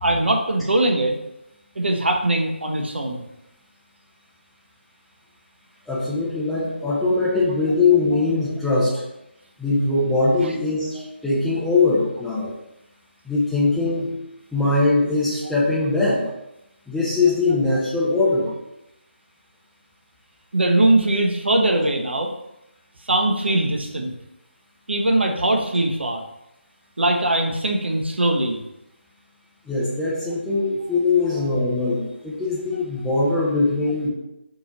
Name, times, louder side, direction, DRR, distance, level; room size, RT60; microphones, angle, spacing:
voice 1, 0.0-1.2 1.8-3.2 20.5-22.3 23.1-24.1 24.9-26.2 27.0-28.6 31.2-31.5, right 1 dB, 70° right, 3 dB, 0.7 m, -21 dB
voice 2, 5.9-9.0 9.6-12.5 13.2-14.1 14.5-16.2 16.9-18.5 29.7-34.1, left 3 dB, ahead, -10 dB, 0.8 m, -21 dB
4.1 x 2.9 x 3.9 m, 0.87 s
figure-of-eight pair, 155°, 6 cm